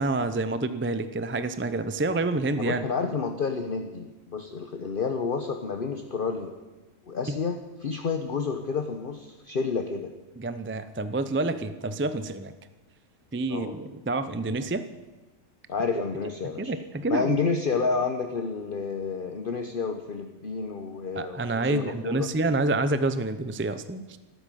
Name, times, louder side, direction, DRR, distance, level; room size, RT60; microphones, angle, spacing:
voice 1, 0.0-2.8 7.3-7.4 10.4-12.5 13.3-14.9 16.6-17.4 21.1-24.2, right 2 dB, 15° right, 12 dB, 0.4 m, -28 dB
voice 2, 2.5-6.6 7.1-10.1 13.5-13.7 15.7-16.7 17.1-22.3, left 5 dB, 45° left, 6 dB, 1.1 m, -30 dB
13.0 x 12.5 x 9.1 m, 1.1 s
omnidirectional pair, 1.4 m